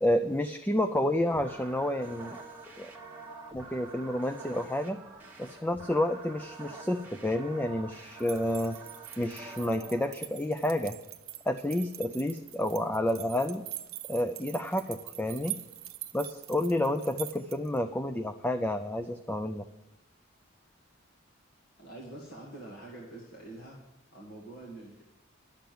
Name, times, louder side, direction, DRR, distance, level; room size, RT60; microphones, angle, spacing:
voice 1, 0.0-2.4 2.8-2.9 3.5-5.0 5.4-8.8 9.2-11.0 11.5-13.6 14.1-15.6 16.1-19.7, left 1 dB, 10° left, 8 dB, 0.4 m, -30 dB
sound 1, 1.3-10.1, right 3 dB, 10° right, 1.4 m, -46 dB
sound 2, 8.2-17.8, right 14 dB, 90° right, 0.8 m, -44 dB
voice 2, 21.8-23.8 24.1-25.0, right 2 dB, 50° left, -4 dB, 2.1 m, -45 dB
11.5 x 6.9 x 7.7 m, 1.0 s
head